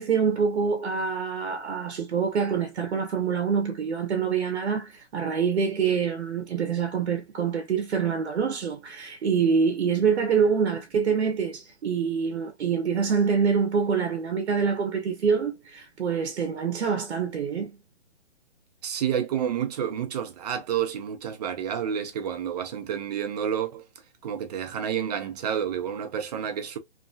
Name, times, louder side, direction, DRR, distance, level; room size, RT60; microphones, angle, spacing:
voice 1, 0.0-17.7, right 6 dB, 65° right, 0.9 m, -25 dB
voice 2, 18.8-23.9 24.2-26.8, right 8 dB, 35° right, 0.7 m, -29 dB
3.0 x 2.6 x 2.2 m
hypercardioid pair, 145°, 35 cm